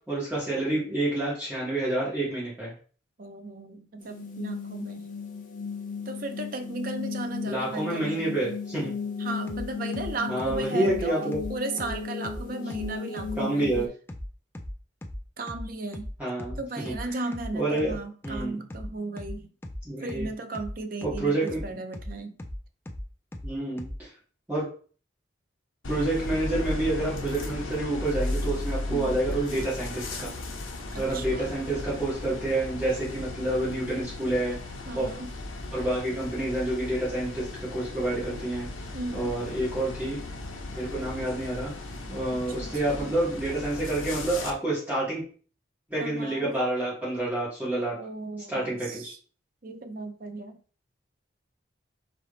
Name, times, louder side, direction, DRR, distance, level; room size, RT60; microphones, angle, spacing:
voice 1, 0.1-2.7 7.5-8.9 10.3-11.4 13.4-13.8 16.2-16.6 16.8-16.9 17.5-17.9 18.2-18.6 19.8-20.3 21.0-21.6 23.4-24.1 24.5-24.7 25.9-30.3 31.0-34.6 34.9-35.1 35.7-38.7 39.1-40.2 40.7-41.7 42.1-45.2 45.9-48.0 48.5-49.1, right 1 dB, 10° right, -10 dB, 2.1 m, -28 dB
voice 2, 3.2-5.1 6.1-8.3 9.2-13.7 15.4-16.1 16.6-19.5 20.0-22.4 28.9-29.2 30.9-31.6 34.9-35.3 38.9-39.4 42.3-43.1 46.0-46.5 48.0-49.2 49.6-50.6, right 2 dB, 45° right, 7 dB, 0.6 m, -36 dB
sound 1, 4.0-13.9, left 5 dB, 40° left, 0.7 m, -36 dB
sound 2, 9.5-24.0, left 1 dB, 10° left, 0.4 m, -38 dB
sound 3, 25.8-44.5, left 2 dB, 85° left, 0.9 m, -36 dB
3.9 x 3.4 x 3.9 m, 0.40 s
head